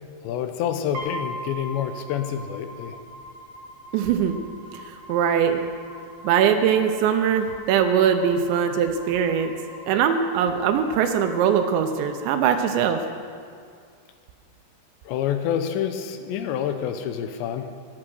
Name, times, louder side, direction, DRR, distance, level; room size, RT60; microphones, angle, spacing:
voice 1, 0.2-3.0 15.1-17.7, left 9 dB, 85° left, 8 dB, 2.9 m, -27 dB
sound 1, 0.9-13.0, equal, 55° right, 2.4 m, -41 dB
voice 2, 3.9-4.4 4.7-5.6 6.2-9.5 9.9-13.0, right 8 dB, 85° right, 6 dB, 2.9 m, -21 dB
13.5 x 10.0 x 6.3 m, 2.2 s
omnidirectional pair, 5.2 m